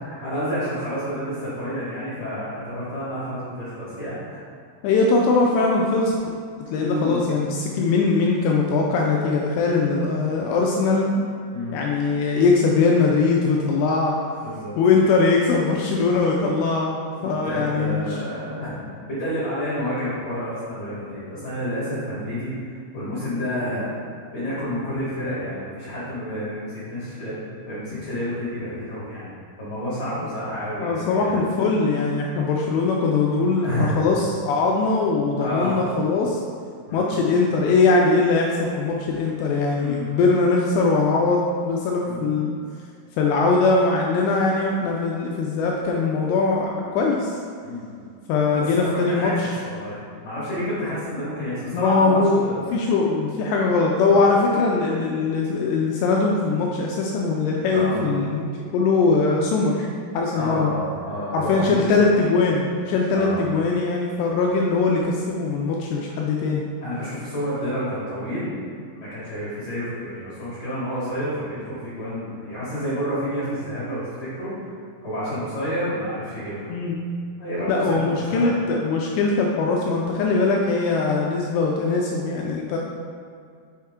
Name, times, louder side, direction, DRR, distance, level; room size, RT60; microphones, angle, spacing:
voice 1, 0.1-4.4 6.8-7.3 11.5-11.8 14.4-14.7 17.2-24.0 24.3-27.3 27.7-29.3 29.6-31.3 33.6-34.0 35.4-35.9 36.9-37.1 39.4-40.3 42.0-42.3 47.6-48.0 48.6-49.3 49.6-52.9 54.1-54.2 57.7-58.1 60.3-62.1 63.1-63.4 66.8-68.5 68.9-74.7 75.0-76.7 77.4-78.5, equal, 65° left, -10 dB, 1.6 m, -29 dB
voice 2, 4.8-6.2 6.7-11.2 11.7-14.1 14.8-18.1 30.8-36.4 36.9-42.5 43.2-47.4 48.3-49.5 51.7-52.4 52.7-58.5 58.7-59.9 60.1-60.7 61.3-66.7 76.7-77.0 77.7-82.8, left 3 dB, 85° left, -1 dB, 2.4 m, -21 dB
6.7 x 4.3 x 3.6 m, 2.2 s
omnidirectional pair, 5.4 m